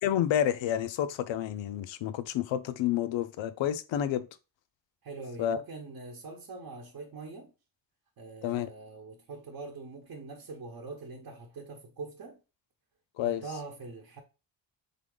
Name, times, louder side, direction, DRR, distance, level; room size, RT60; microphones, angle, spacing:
voice 1, 0.0-4.3 5.4-5.6 8.4-8.7 13.2-13.4, left 10 dB, 90° left, 0.6 m, -29 dB
voice 2, 5.0-7.5 8.2-12.4 13.2-14.2, right 3 dB, 50° right, 0.9 m, -43 dB
3.8 x 3.6 x 3.8 m
cardioid pair, 135°, 44 cm